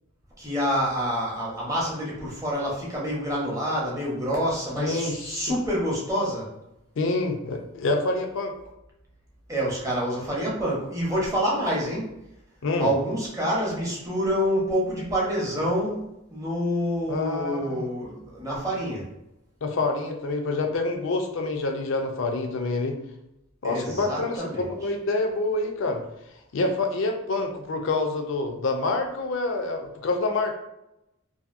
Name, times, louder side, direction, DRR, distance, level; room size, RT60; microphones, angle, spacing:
voice 1, 0.4-6.5 9.5-12.1 12.8-16.0 16.3-19.0 23.6-24.6, equal, 15° right, -4 dB, 0.7 m, -27 dB
voice 2, 4.8-5.5 7.0-8.5 12.6-12.9 17.1-17.9 19.6-23.0 23.6-26.0 26.5-30.5, left 3 dB, 60° left, 5 dB, 0.4 m, -27 dB
2.7 x 2.5 x 2.5 m, 0.85 s
head